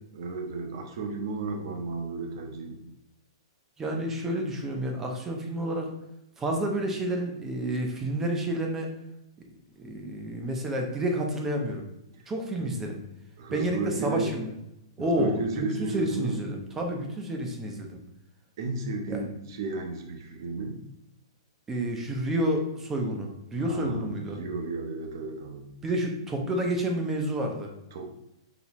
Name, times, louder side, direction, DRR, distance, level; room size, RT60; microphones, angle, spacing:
voice 1, 0.1-2.8 12.6-12.7 13.4-14.3 15.0-16.4 18.6-20.8 23.6-25.7 27.9-28.1, right 3 dB, 50° right, 4 dB, 0.7 m, -33 dB
voice 2, 3.8-5.9 6.4-8.9 9.8-11.9 12.3-13.0 13.5-14.5 15.0-18.0 19.1-19.2 21.7-24.4 25.8-27.7, right 1 dB, 10° right, 2 dB, 0.5 m, -29 dB
4.1 x 3.3 x 3.0 m, 0.87 s
hypercardioid pair, 165°, 3 cm